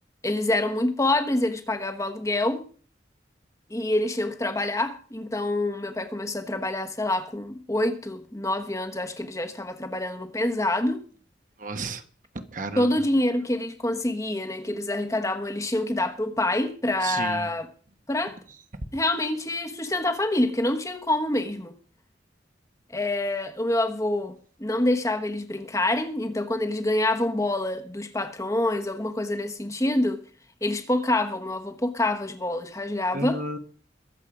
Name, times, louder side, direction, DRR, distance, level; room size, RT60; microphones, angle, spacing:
voice 1, 0.2-2.6 3.7-11.0 12.8-17.7 18.1-18.4 18.9-21.7 22.9-30.2 30.6-33.4, left 1 dB, 15° left, 1.2 m, -26 dB
voice 2, 11.6-12.0 12.5-12.9 17.0-17.5 33.1-33.6, right 2 dB, 45° right, 1.3 m, -32 dB
22.0 x 7.4 x 5.0 m
head